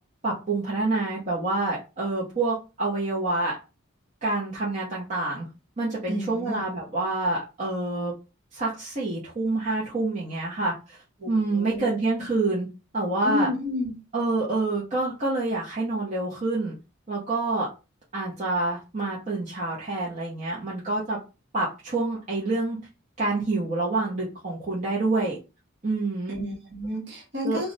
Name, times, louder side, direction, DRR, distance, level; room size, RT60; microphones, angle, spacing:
voice 1, 0.2-3.6 4.2-5.4 5.8-8.1 8.5-11.0 11.3-12.7 12.9-13.5 14.1-16.8 17.1-17.7 18.1-21.2 21.5-22.8 23.2-25.4 25.8-26.4 27.4-27.6, right 2 dB, 35° right, 0.6 m, -27 dB
voice 2, 6.1-6.6 11.2-12.0 13.2-14.0 26.3-27.7, left 1 dB, 50° right, 1.0 m, -31 dB
2.3 x 2.0 x 3.8 m
head